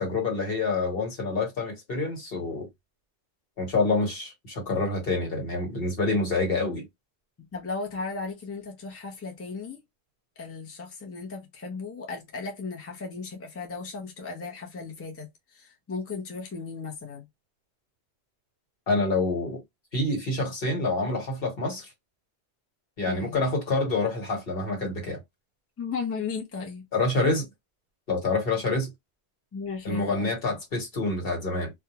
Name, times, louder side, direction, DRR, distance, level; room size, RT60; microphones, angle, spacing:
voice 1, 0.0-2.7 3.6-6.8 18.9-19.6 19.9-21.9 23.0-25.2 26.9-27.5 28.1-28.9 29.8-31.7, left 3 dB, 60° left, 1.3 m, -27 dB
voice 2, 7.5-9.8 10.4-17.3 23.1-23.4 25.8-26.8 29.5-30.6, left 4 dB, 15° left, 0.5 m, -36 dB
2.3 x 2.2 x 2.8 m
omnidirectional pair, 1.1 m